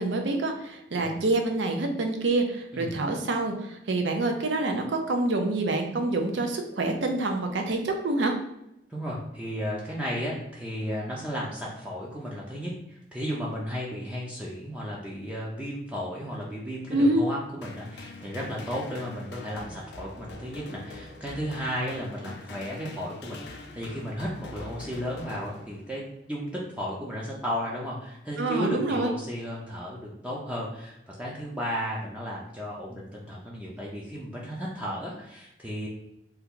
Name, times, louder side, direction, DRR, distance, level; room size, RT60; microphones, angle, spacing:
voice 1, 0.0-8.3 16.9-17.2 28.4-29.1, right 2 dB, 80° right, 4 dB, 0.5 m, -26 dB
voice 2, 8.9-35.9, equal, 5° right, -4 dB, 0.4 m, -34 dB
sound 1, 17.6-26.1, left 2 dB, 70° left, 0.4 m, -44 dB
2.9 x 2.3 x 3.6 m, 0.85 s
head